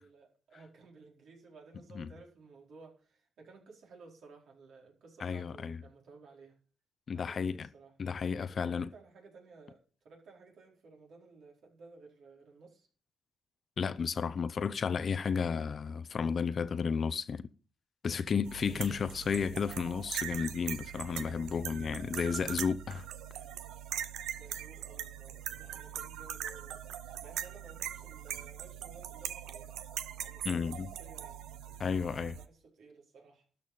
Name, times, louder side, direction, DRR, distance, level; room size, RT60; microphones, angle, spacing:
voice 1, 0.0-6.6 7.1-7.9 8.5-12.9 18.7-19.3 24.3-26.8 27.2-29.8 30.2-31.5 32.0-33.5, right 4 dB, 65° right, 4.3 m, -56 dB
voice 2, 5.2-5.8 7.1-7.7 8.0-8.9 13.8-17.5 18.0-23.1 30.4-30.9 31.8-32.3, left 6 dB, 45° left, 0.7 m, -33 dB
sound 1, 18.4-32.5, right 10 dB, 85° right, 0.9 m, -41 dB
13.0 x 5.6 x 8.6 m
cardioid pair, 90°, 0 cm